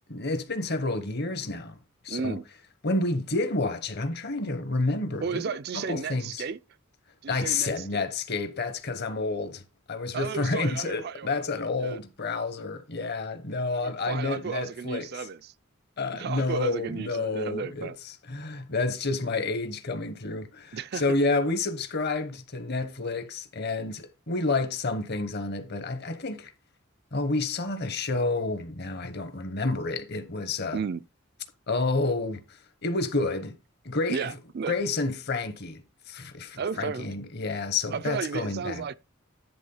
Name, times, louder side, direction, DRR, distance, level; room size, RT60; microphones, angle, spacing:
voice 1, 0.1-1.8 2.0-2.4 2.8-6.4 7.3-9.6 9.9-15.1 16.0-26.5 27.1-30.8 31.7-32.4 32.8-33.6 33.8-34.3 34.7-35.8 36.1-38.9, left 3 dB, 50° left, 1.1 m, -29 dB
voice 2, 2.1-2.4 5.2-6.6 7.2-8.0 10.1-11.5 11.8-12.0 13.7-15.5 16.1-18.0 20.7-21.0 30.7-31.0 34.1-34.8 36.6-37.1 37.9-38.9, right 5 dB, 50° right, 0.4 m, -33 dB
10.5 x 3.6 x 5.4 m
head